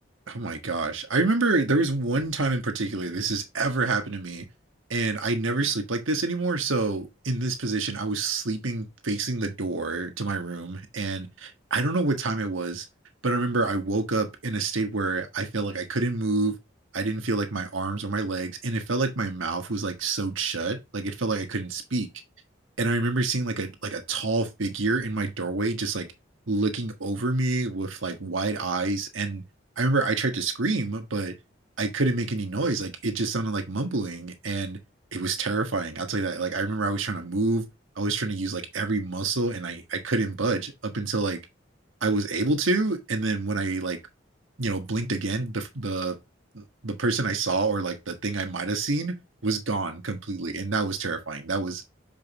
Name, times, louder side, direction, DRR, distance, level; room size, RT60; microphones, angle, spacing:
voice 1, 0.3-4.5 4.9-12.8 13.2-16.5 16.9-22.1 22.8-26.1 26.5-29.4 29.8-31.3 31.8-34.8 35.1-37.6 38.0-41.4 42.0-44.0 44.6-46.2 46.5-49.2 49.4-51.8, right 3 dB, 80° right, 1.4 m, -27 dB
7.2 x 5.1 x 2.9 m
head